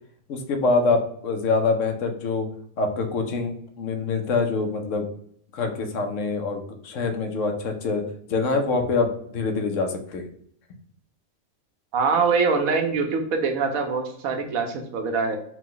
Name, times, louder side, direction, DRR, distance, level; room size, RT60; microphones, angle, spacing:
voice 1, 0.3-2.5 2.8-5.1 5.5-8.0 8.3-10.2, left 4 dB, 70° left, 4 dB, 1.0 m, -25 dB
voice 2, 11.9-15.4, right 5 dB, 75° right, 4 dB, 1.1 m, -23 dB
4.8 x 2.2 x 3.7 m, 0.67 s
omnidirectional pair, 1.5 m